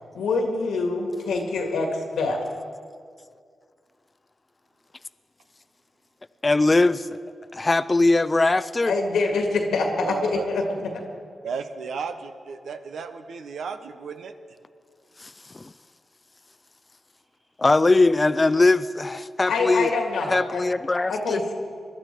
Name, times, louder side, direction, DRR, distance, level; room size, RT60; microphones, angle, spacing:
voice 1, 0.1-2.4 8.9-11.0 19.5-20.6 21.1-21.5, left 3 dB, 90° left, 3 dB, 2.0 m, -25 dB
voice 2, 6.4-7.1 7.5-8.9 15.2-15.7 17.6-19.9 20.3-21.4, left 2 dB, 35° left, 13 dB, 0.5 m, -21 dB
voice 3, 9.9-10.5 11.4-14.3, right 6 dB, 80° right, 8 dB, 0.9 m, -34 dB
21.5 x 12.0 x 4.6 m, 2.1 s
supercardioid pair, 45°, 0 cm